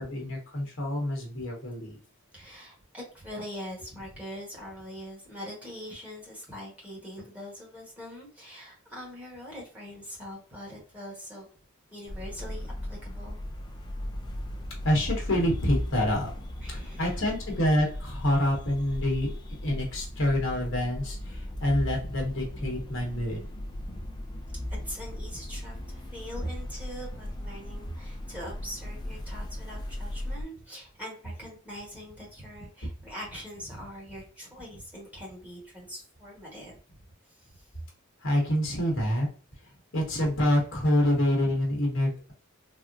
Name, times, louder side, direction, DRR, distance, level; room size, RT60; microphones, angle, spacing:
voice 1, 0.0-2.0 14.8-16.3 16.7-19.3 19.6-23.5 38.2-39.3 39.9-42.3, left 1 dB, 65° left, 0 dB, 1.0 m, -27 dB
voice 2, 2.3-11.5 11.9-13.4 16.6-17.1 21.9-22.1 23.8-24.1 24.7-36.8 37.4-37.7, equal, 5° right, -4 dB, 1.2 m, -43 dB
sound 1, 12.1-30.4, left 1 dB, 20° left, 0.3 m, -37 dB
3.5 x 2.0 x 2.5 m, 0.40 s
head